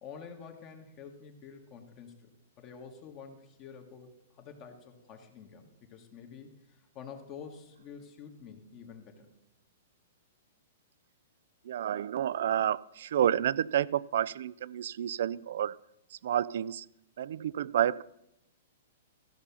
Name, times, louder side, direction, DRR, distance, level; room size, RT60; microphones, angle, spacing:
voice 1, 0.0-2.3 2.6-9.3, left 6 dB, 30° left, 4 dB, 1.3 m, -48 dB
voice 2, 11.7-15.8 16.2-16.9 17.2-18.0, right 10 dB, 65° right, 22 dB, 0.3 m, -30 dB
13.5 x 5.5 x 7.0 m, 0.86 s
hypercardioid pair, 150°, 0 cm